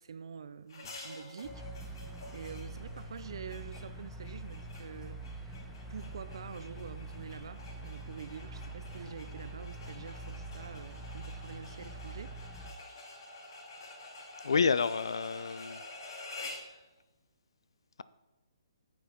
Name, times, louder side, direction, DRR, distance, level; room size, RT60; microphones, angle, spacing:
voice 1, 0.0-5.6 5.9-12.4, right 6 dB, 65° right, 0.5 m, -47 dB
sound 1, 0.7-16.7, left 2 dB, 55° left, 2.6 m, -49 dB
sound 2, 1.4-12.7, right 2 dB, ahead, 1.0 m, -45 dB
voice 2, 14.4-15.8, left 5 dB, 70° left, 0.4 m, -29 dB
9.0 x 7.3 x 4.4 m
figure-of-eight pair, 140°, 3 cm